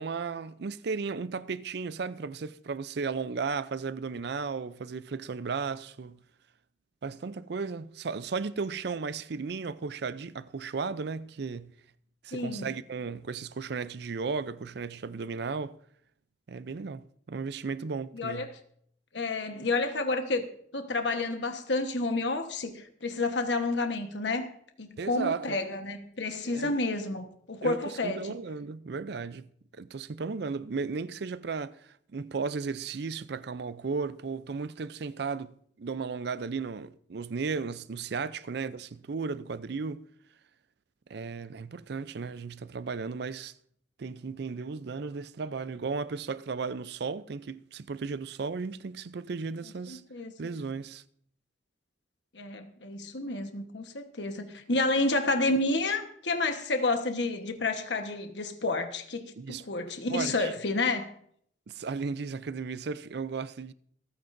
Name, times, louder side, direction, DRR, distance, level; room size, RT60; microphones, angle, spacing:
voice 1, 0.0-6.2 7.0-11.7 12.2-15.8 16.5-18.5 25.0-25.6 26.5-26.7 27.6-29.5 29.7-40.1 41.1-43.5 44.0-50.0 50.4-51.0 59.4-59.6 60.1-60.5 61.7-63.7, right 4 dB, 60° right, 0.5 m, -35 dB
voice 2, 12.3-12.7 18.1-18.6 19.1-20.5 20.7-24.5 24.8-28.2 49.9-50.3 52.3-61.1, left 2 dB, 75° left, 1.2 m, -30 dB
26.5 x 9.4 x 2.6 m
head